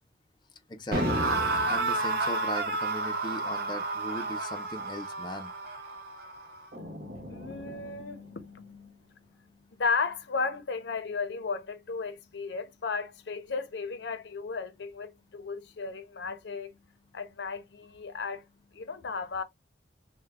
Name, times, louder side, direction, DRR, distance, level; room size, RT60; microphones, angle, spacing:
voice 1, 0.7-1.4 1.7-5.5, left 1 dB, 25° left, 0.5 m, -39 dB
sound 1, 0.9-8.0, right 2 dB, 55° right, 0.8 m, -31 dB
voice 2, 6.8-9.0 9.8-16.8 17.1-18.4 18.7-19.4, left 4 dB, 70° left, 0.5 m, -35 dB
3.4 x 2.1 x 3.3 m
head